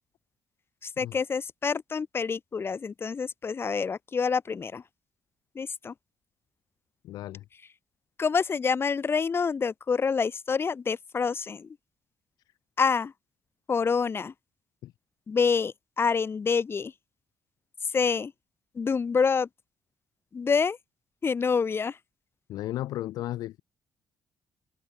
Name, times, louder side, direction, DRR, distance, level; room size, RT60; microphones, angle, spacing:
voice 1, 0.8-4.8 5.6-5.9 8.2-11.7 12.8-13.1 13.7-14.3 15.3-16.9 17.9-18.3 18.8-19.5 20.3-20.8 21.2-21.9, left 5 dB, 40° left, 2.2 m, -27 dB
voice 2, 7.0-7.4 14.8-14.9 22.5-23.6, left 14 dB, 85° left, 5.3 m, -34 dB
open air
cardioid pair, 85°, 6 cm